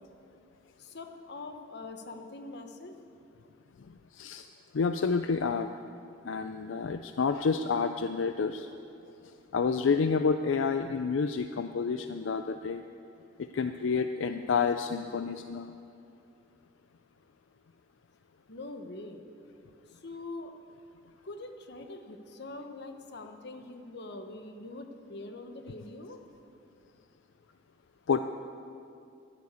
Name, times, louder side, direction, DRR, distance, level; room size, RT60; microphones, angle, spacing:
voice 1, 0.8-2.9 18.5-19.2 20.0-20.5 21.2-26.2, left 2 dB, 60° left, 6 dB, 1.1 m, -43 dB
voice 2, 4.1-4.5 4.7-5.7 6.2-8.7 9.5-12.8 13.4-15.7 28.1-28.2, left 5 dB, 85° left, 9 dB, 0.4 m, -29 dB
11.0 x 10.5 x 8.2 m, 2.5 s
head